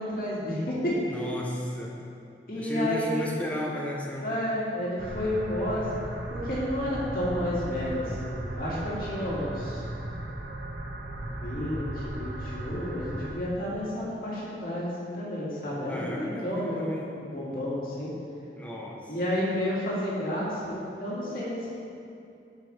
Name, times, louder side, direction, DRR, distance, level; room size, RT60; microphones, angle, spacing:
voice 1, 0.0-1.2 2.5-3.2 4.2-6.0 6.3-9.8 11.2-18.1 19.1-21.7, left 1 dB, 55° left, -7 dB, 2.3 m, -31 dB
voice 2, 1.1-2.0 2.5-4.3 15.9-17.1 18.6-19.1, equal, 10° left, -3 dB, 1.0 m, -34 dB
sound 1, 5.0-13.3, right 1 dB, 65° right, 0.7 m, -36 dB
13.0 x 5.8 x 3.5 m, 2.5 s
head